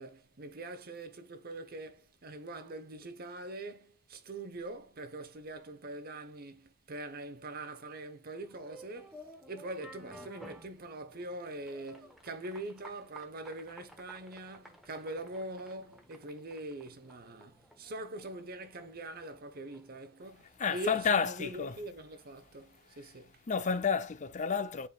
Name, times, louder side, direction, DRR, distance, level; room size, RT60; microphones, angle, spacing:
voice 1, 0.0-23.5, right 1 dB, 45° right, 0.9 m, -43 dB
sound 1, 8.4-21.2, equal, ahead, 1.1 m, -55 dB
voice 2, 20.6-21.8 23.5-24.9, left 6 dB, 35° left, 0.5 m, -30 dB
9.2 x 4.9 x 2.4 m
head